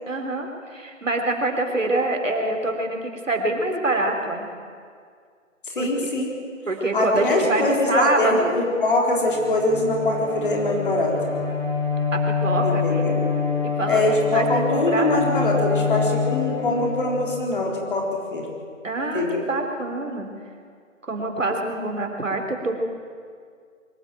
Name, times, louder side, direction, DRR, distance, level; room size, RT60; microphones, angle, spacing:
voice 1, 0.1-4.5 5.8-5.9 6.7-8.6 12.1-13.1 13.8-15.1 18.8-20.3 21.1-22.8, right 2 dB, 70° right, 3 dB, 3.5 m, -25 dB
voice 2, 5.7-6.3 6.9-11.1 12.6-13.2 13.9-18.0 18.3-18.5 19.1-19.4, left 2 dB, 40° left, 0 dB, 4.0 m, -23 dB
Bowed string instrument, 9.2-17.6, left 5 dB, 5° left, 4.2 m, -26 dB
23.0 x 12.5 x 9.1 m, 2.1 s
figure-of-eight pair, 160°, 40 cm